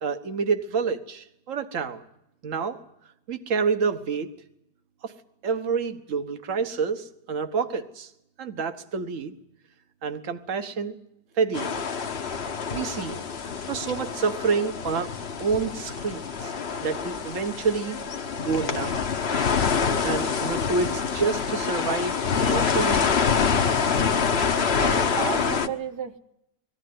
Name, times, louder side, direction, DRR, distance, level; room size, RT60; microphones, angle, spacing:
voice 1, 0.0-2.0 2.4-2.8 3.3-4.3 5.0-5.1 5.4-8.1 8.4-9.3 10.0-10.9 11.4-11.7 12.7-13.2 13.7-15.1 15.4-16.5 16.8-18.0 18.4-18.9 20.0-23.0, right 5 dB, 55° right, 8 dB, 1.7 m, -28 dB
sound 1, 11.5-25.7, left 6 dB, 45° left, 1.1 m, -26 dB
voice 2, 24.6-26.2, right 8 dB, 85° right, 7 dB, 1.6 m, -33 dB
22.0 x 14.5 x 9.6 m, 0.80 s
omnidirectional pair, 1.7 m